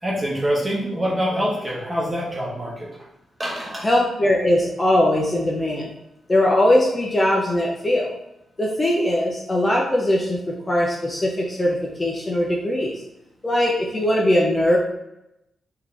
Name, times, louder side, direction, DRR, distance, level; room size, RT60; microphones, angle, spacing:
voice 1, 0.0-2.9 3.4-3.9, equal, 20° right, -3 dB, 1.2 m, -25 dB
voice 2, 3.8-5.9 6.3-8.1 8.6-12.9 13.4-14.8, left 1 dB, 20° left, -3 dB, 0.7 m, -20 dB
4.8 x 2.9 x 3.4 m, 0.85 s
cardioid pair, 120°, 0 cm